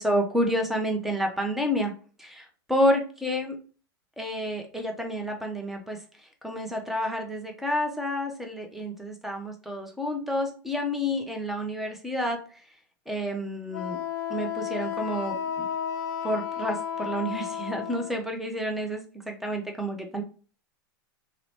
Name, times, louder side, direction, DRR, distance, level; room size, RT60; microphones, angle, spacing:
voice 1, 0.0-1.9 2.2-3.6 4.2-6.0 6.4-12.4 13.1-14.0 14.3-15.7 16.2-20.2, equal, ahead, 2 dB, 0.6 m, -29 dB
Wind instrument woodwind instrument, 13.7-18.2, left 8 dB, 55° left, 0.4 m, -32 dB
2.9 x 2.0 x 2.9 m, 0.38 s
hypercardioid pair, 110°, 12 cm